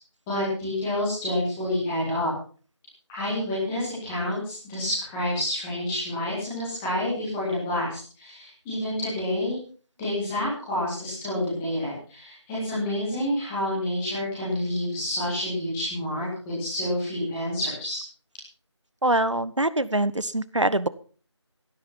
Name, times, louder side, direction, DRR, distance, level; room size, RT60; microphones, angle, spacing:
voice 1, 0.3-2.3 3.1-9.6 10.0-18.0, left 1 dB, ahead, -9 dB, 1.8 m, -28 dB
voice 2, 19.0-20.9, right 1 dB, 75° right, 17 dB, 1.2 m, -24 dB
16.5 x 10.5 x 5.8 m, 0.41 s
figure-of-eight pair, 170°, 15 cm